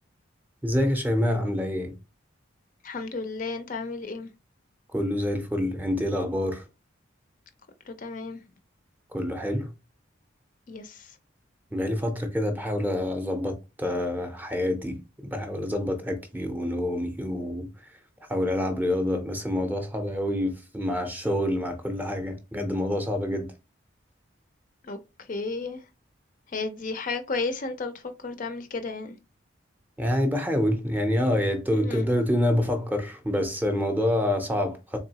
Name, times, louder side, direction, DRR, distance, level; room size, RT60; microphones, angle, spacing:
voice 1, 0.6-1.9 4.9-6.6 9.1-9.7 11.7-17.7 18.3-23.5 30.0-35.0, left 1 dB, 10° right, 0.6 m, -27 dB
voice 2, 2.8-4.3 7.9-8.4 10.7-11.1 24.8-25.8 26.5-29.2 31.8-32.1, left 3 dB, 40° left, 0.4 m, -33 dB
3.6 x 3.4 x 2.8 m
head